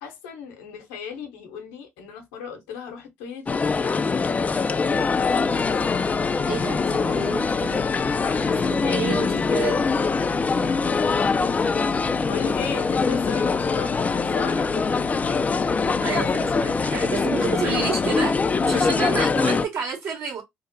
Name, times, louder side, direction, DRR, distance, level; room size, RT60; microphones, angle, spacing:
voice 1, 0.0-4.0 4.7-5.1 5.7-6.0 8.2-9.8 10.4-11.7 12.3-15.5 17.3-17.5 18.7-19.0, left 7 dB, 80° left, 0.8 m, -36 dB
sound 1, 3.5-19.6, left 4 dB, 30° left, 0.3 m, -23 dB
sound 2, 4.9-19.4, left 3 dB, 80° right, 0.6 m, -42 dB
voice 2, 6.5-7.8 8.6-9.8 16.0-20.4, right 6 dB, 55° right, 1.6 m, -30 dB
2.9 x 2.0 x 2.5 m
hypercardioid pair, 55°, 5 cm